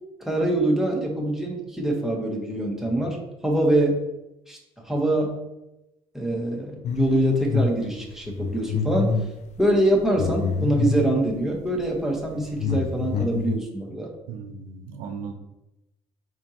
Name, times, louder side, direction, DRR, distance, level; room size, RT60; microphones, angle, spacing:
voice 1, 0.2-3.2 3.4-4.0 4.5-4.6 4.9-5.3 6.1-9.1 9.6-14.1, right 1 dB, 5° right, -1 dB, 1.2 m, -24 dB
sound 1, 6.8-7.7 8.1-11.1 11.8-12.0 12.3-13.6, left 5 dB, 50° left, 0.5 m, -26 dB
voice 2, 14.3-15.3, right 5 dB, 70° right, 6 dB, 0.7 m, -36 dB
4.2 x 3.8 x 2.9 m, 0.93 s
hypercardioid pair, 70°, 15 cm